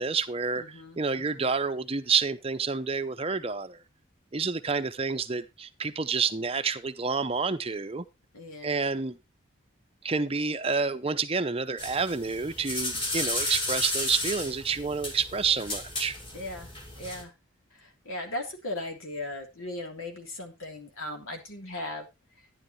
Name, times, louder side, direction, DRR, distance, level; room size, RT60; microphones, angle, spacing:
voice 1, 0.0-3.8 4.3-8.1 8.6-9.2 10.0-16.2, right 5 dB, 25° right, 0.6 m, -29 dB
voice 2, 0.6-1.4 8.3-8.8 16.3-16.7 17.0-17.3 18.0-22.1, left 1 dB, 80° left, 3.3 m, -37 dB
sound 1, 11.8-17.2, left 1 dB, 25° left, 2.2 m, -33 dB
11.5 x 10.5 x 3.1 m
head